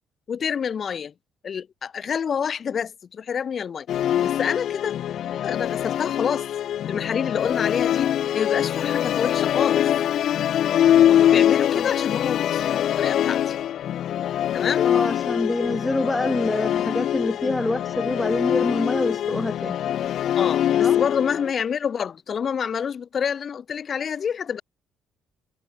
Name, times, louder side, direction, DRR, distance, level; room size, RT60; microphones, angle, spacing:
voice 1, 0.3-1.1 1.4-3.9 4.2-4.9 5.4-6.5 6.9-9.9 11.1-12.6 13.0-13.6 14.5-14.9 20.4-24.6, left 7 dB, 50° left, 3.7 m, -27 dB
Musical instrument, 3.9-21.5, left 11 dB, 65° left, 0.8 m, -23 dB
voice 2, 11.3-11.9 14.8-19.8 20.8-21.0, left 2 dB, 15° left, 3.5 m, -26 dB
supercardioid pair, 70°, 0 cm